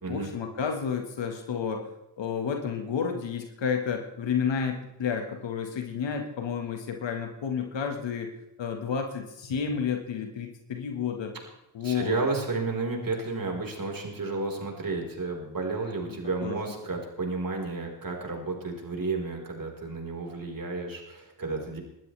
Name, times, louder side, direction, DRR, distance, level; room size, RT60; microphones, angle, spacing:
voice 1, 0.1-1.8 2.2-8.3 8.6-11.3 11.7-12.2 16.1-16.6, left 6 dB, 70° left, 4 dB, 1.7 m, -31 dB
voice 2, 11.8-21.8, right 3 dB, 45° right, 1 dB, 4.6 m, -32 dB
22.0 x 12.5 x 3.4 m, 0.88 s
supercardioid pair, 40°, 46 cm